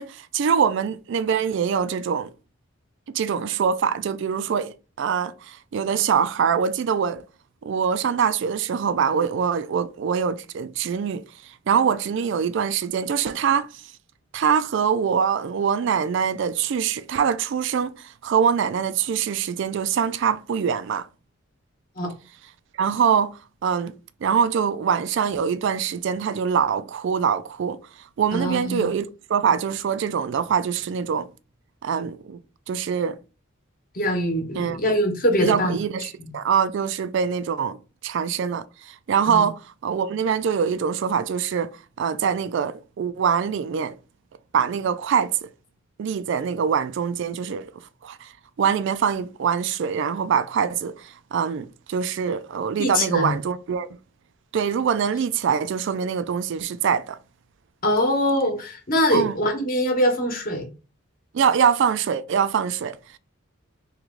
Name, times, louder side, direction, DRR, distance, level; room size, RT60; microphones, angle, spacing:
voice 1, 0.0-2.3 3.1-7.2 7.6-11.2 11.7-13.8 14.3-21.1 22.8-23.3 23.6-23.9 24.2-27.8 28.2-29.0 29.3-31.3 31.8-32.4 32.7-33.2 34.5-34.8 35.4-37.8 38.0-41.7 42.0-43.9 44.5-45.5 46.0-47.7 48.0-48.3 48.6-53.9 54.5-57.2 59.1-59.4 61.3-63.0, right 7 dB, 60° right, 0.3 m, -24 dB
voice 2, 28.3-28.9 33.9-35.8 36.0-36.3 39.3-39.5 52.8-53.3 57.8-60.7, equal, 40° left, 1.0 m, -23 dB
3.1 x 3.0 x 3.6 m
head